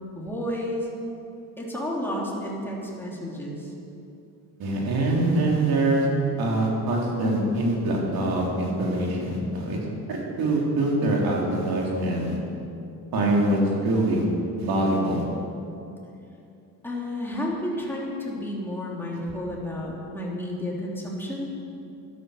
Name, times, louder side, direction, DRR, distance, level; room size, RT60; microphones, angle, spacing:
voice 1, 0.2-0.9 1.6-3.7 16.8-21.5, left 1 dB, 5° left, -4 dB, 3.0 m, -31 dB
voice 2, 4.6-6.1 6.4-9.8 10.1-12.4 13.1-14.2 14.6-15.2 19.1-19.2, right 1 dB, 65° right, -2 dB, 3.5 m, -24 dB
12.5 x 12.0 x 6.7 m, 2.7 s
cardioid pair, 130°, 39 cm